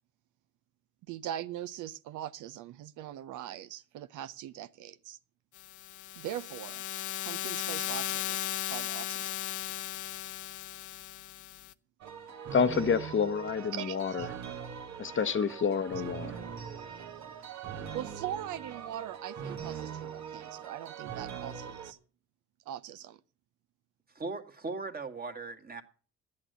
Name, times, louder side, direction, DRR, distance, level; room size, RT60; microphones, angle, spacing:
voice 1, 1.1-5.2 6.2-6.8 7.2-9.3 13.7-14.3 17.9-22.0 22.7-23.2, right 11 dB, 85° right, 0.7 m, -41 dB
sound 1, 5.6-11.7, left 12 dB, 80° left, 0.8 m, -37 dB
sound 2, 12.0-21.9, right 8 dB, 65° right, 1.5 m, -41 dB
voice 2, 12.5-14.3 15.0-16.4, left 6 dB, 40° left, 0.8 m, -28 dB
voice 3, 24.2-25.8, right 3 dB, 30° right, 1.8 m, -38 dB
11.5 x 8.7 x 8.0 m
cardioid pair, 90°, 30 cm